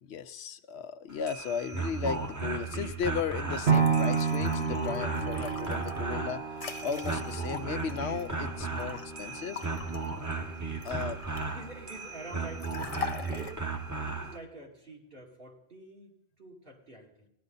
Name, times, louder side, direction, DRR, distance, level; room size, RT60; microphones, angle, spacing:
voice 1, 0.0-6.4 6.8-9.6 10.8-11.2, left 7 dB, 85° left, 11 dB, 1.0 m, -35 dB
sound 1, 1.1-14.4, right 3 dB, 20° right, 1.0 m, -36 dB
sound 2, 3.6-9.1 9.5-11.6 12.6-13.5, left 6 dB, 40° left, 0.7 m, -43 dB
sound 3, 3.7-11.8 12.2-12.3, right 5 dB, 75° right, 1.7 m, -32 dB
voice 2, 11.1-13.6 13.9-17.3, right 2 dB, 60° right, -2 dB, 2.7 m, -48 dB
17.5 x 11.0 x 4.0 m, 0.82 s
omnidirectional pair, 1.1 m